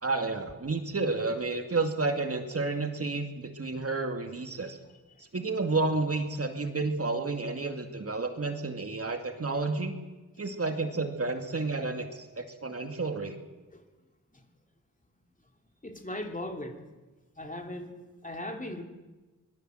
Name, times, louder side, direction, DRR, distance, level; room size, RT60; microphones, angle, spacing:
voice 1, 0.0-4.8 5.2-9.9 10.4-13.4, right 3 dB, 45° right, 6 dB, 2.3 m, -31 dB
voice 2, 15.8-16.8 17.3-18.8, left 1 dB, 25° left, 4 dB, 3.0 m, -39 dB
24.5 x 21.0 x 7.9 m, 1.2 s
wide cardioid pair, 100°, 33 cm